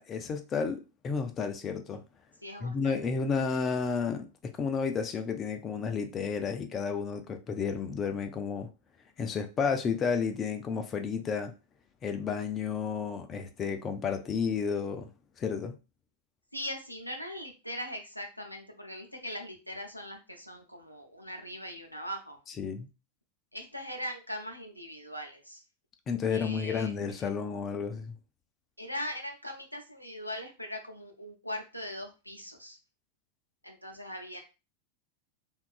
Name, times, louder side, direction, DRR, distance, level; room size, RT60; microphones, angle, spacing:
voice 1, 0.0-2.0 2.6-8.7 9.2-11.5 12.0-15.1 15.4-15.7 22.6-22.9 26.1-28.2, left 5 dB, 25° left, 0.3 m, -32 dB
voice 2, 2.4-3.0 16.5-22.4 23.5-25.6 26.3-27.0 28.8-32.8 33.6-34.4, equal, 90° left, 0.5 m, -40 dB
2.8 x 2.3 x 2.3 m
figure-of-eight pair, 90°, 0 cm